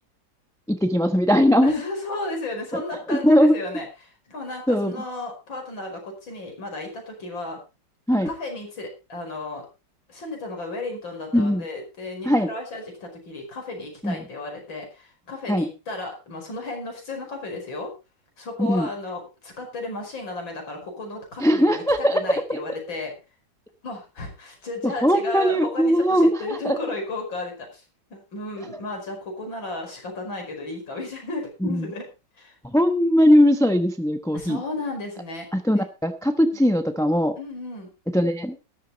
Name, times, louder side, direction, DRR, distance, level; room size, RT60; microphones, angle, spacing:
voice 1, 0.7-1.7 2.7-2.8 3.1-3.5 4.7-4.9 8.1-8.3 11.3-11.6 12.2-12.5 14.0-14.2 15.5-15.7 18.6-18.9 21.4-22.6 25.0-26.8 31.7-31.9 32.7-34.6 35.5-37.3 38.1-38.6, equal, 5° left, 7 dB, 0.7 m, -20 dB
voice 2, 1.6-7.6 8.3-9.7 10.1-17.9 18.4-23.1 23.8-27.8 28.1-32.1 32.4-32.6 34.3-35.5 35.8-35.9 37.4-37.9, left 2 dB, 85° left, 2 dB, 5.8 m, -34 dB
13.5 x 12.0 x 4.1 m, 0.29 s
omnidirectional pair, 2.0 m